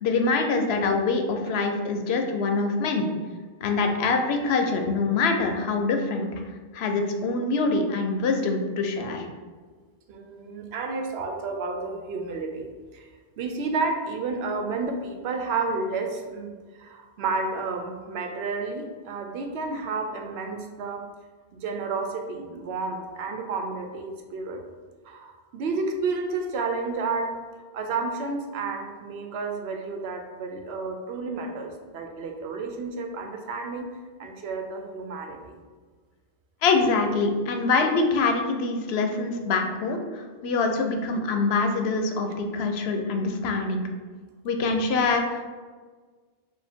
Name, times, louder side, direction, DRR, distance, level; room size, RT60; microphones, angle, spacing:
voice 1, 0.0-3.1 3.6-6.3 6.7-9.3 36.6-43.9 44.4-45.5, left 3 dB, 85° left, 4 dB, 0.8 m, -24 dB
voice 2, 10.1-13.1 13.4-21.0 21.5-24.6 25.0-27.4 27.7-33.9 34.2-35.6, right 4 dB, 85° right, 4 dB, 0.8 m, -31 dB
4.6 x 2.2 x 3.5 m, 1.5 s
omnidirectional pair, 1.0 m